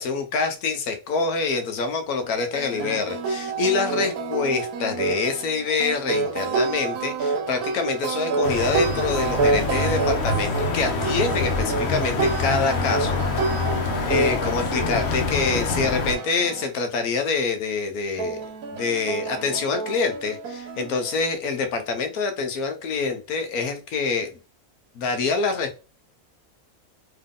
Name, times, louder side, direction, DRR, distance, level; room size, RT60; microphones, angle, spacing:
voice 1, 0.0-13.2 14.1-18.4 18.7-24.3 24.9-25.8, left 4 dB, 75° left, 7 dB, 1.3 m, -26 dB
sound 1, 2.2-16.7 18.2-21.2, right 4 dB, 75° right, 1.2 m, -28 dB
sound 2, 8.4-16.1, left 3 dB, 55° left, 0.9 m, -26 dB
3.7 x 3.3 x 3.7 m, 0.33 s
omnidirectional pair, 1.6 m